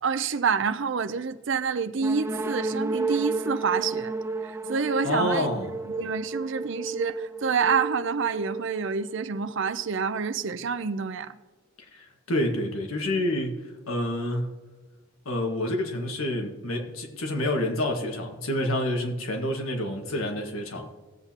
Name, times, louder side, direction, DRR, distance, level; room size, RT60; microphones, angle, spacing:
voice 1, 0.0-4.1 4.4-5.5 5.8-11.4, right 5 dB, 60° right, 0.5 m, -27 dB
sound 1, 2.0-9.7, right 3 dB, 10° right, 0.4 m, -32 dB
voice 2, 5.0-5.7 11.9-14.5 15.2-20.9, left 1 dB, 85° left, 1.6 m, -28 dB
18.0 x 8.0 x 2.9 m
head